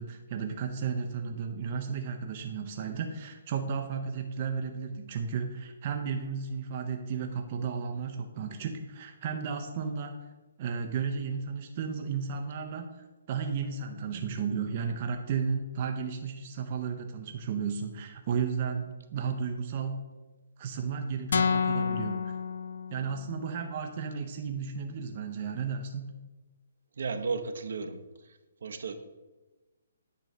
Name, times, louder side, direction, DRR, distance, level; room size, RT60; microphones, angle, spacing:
voice 1, 0.0-10.1 10.6-20.0 20.6-22.3 22.9-26.2, right 6 dB, 30° right, 4 dB, 0.6 m, -33 dB
sound 1, 21.3-23.4, left 5 dB, 60° left, 0.3 m, -29 dB
voice 2, 27.0-28.0 28.6-28.9, right 4 dB, 60° right, 8 dB, 0.7 m, -33 dB
9.0 x 3.1 x 6.6 m, 1.2 s
hypercardioid pair, 170°, 0 cm